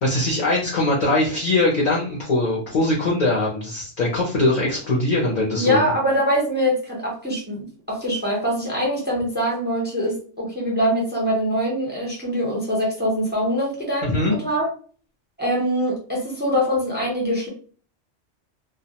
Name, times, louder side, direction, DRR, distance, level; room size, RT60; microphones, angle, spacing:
voice 1, 0.0-5.8 14.0-14.3, left 2 dB, 50° left, -3 dB, 0.5 m, -21 dB
voice 2, 5.6-14.7 15.4-17.5, equal, 10° right, -3 dB, 0.5 m, -23 dB
2.3 x 2.0 x 2.8 m, 0.41 s
omnidirectional pair, 1.3 m